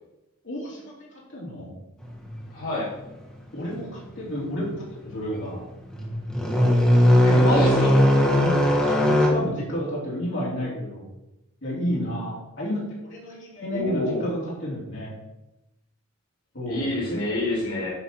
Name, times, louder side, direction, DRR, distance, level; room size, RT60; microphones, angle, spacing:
voice 1, 0.4-1.7 3.5-5.7 8.4-8.7 9.0-11.1 11.6-15.1 16.5-17.2, equal, 55° left, -6 dB, 3.6 m, -31 dB
sound 1, 2.0-2.5 3.0-3.2 3.7-3.9 4.2-4.7 5.1-5.2 5.7-9.3, equal, 5° left, 2.1 m, -19 dB
voice 2, 2.5-2.9 7.2-7.9 13.7-14.3 16.7-17.9, left 1 dB, 80° left, -5 dB, 3.7 m, -27 dB
10.0 x 5.2 x 6.2 m, 0.96 s
head